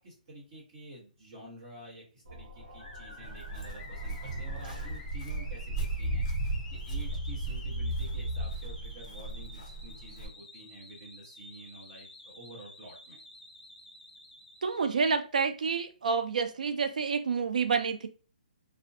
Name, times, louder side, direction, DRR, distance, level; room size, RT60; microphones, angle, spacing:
voice 1, 0.0-13.2, right 1 dB, 20° right, -6 dB, 1.0 m, -50 dB
sound 1, 2.3-5.6, right 1 dB, 80° right, 0.9 m, -45 dB
sound 2, 2.8-15.1, left 2 dB, 10° left, 1.0 m, -51 dB
Walk footsteps, 3.2-10.3, right 2 dB, 35° left, 0.7 m, -35 dB
voice 2, 14.6-18.1, right 5 dB, 60° right, 8 dB, 0.3 m, -28 dB
2.5 x 2.1 x 2.5 m, 0.37 s
hypercardioid pair, 180°, 5 cm